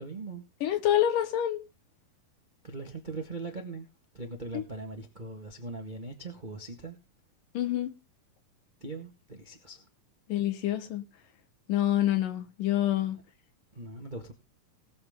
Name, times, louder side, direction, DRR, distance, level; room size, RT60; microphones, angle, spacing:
voice 1, 0.0-0.4 2.6-3.9 4.1-7.0 8.8-9.9 13.7-14.3, right 3 dB, 35° right, 0.7 m, -40 dB
voice 2, 0.6-1.6 4.5-4.6 7.5-7.9 10.3-11.1 11.7-13.2, left 12 dB, 75° left, 2.8 m, -27 dB
19.5 x 7.6 x 3.6 m
omnidirectional pair, 4.0 m